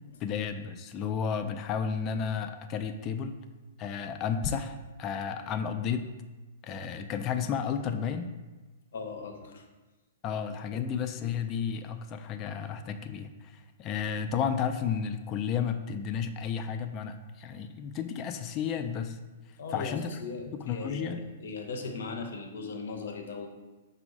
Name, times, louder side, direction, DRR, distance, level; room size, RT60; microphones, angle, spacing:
voice 1, 0.2-3.4 3.8-6.1 6.6-8.3 10.2-19.2 19.7-20.2 20.5-21.3, left 7 dB, 35° left, 8 dB, 0.3 m, -32 dB
voice 2, 8.9-9.6 10.7-10.9 19.6-23.5, left 4 dB, 70° left, 3 dB, 0.6 m, -38 dB
5.2 x 2.0 x 4.7 m, 1.2 s
hypercardioid pair, 120°, 0 cm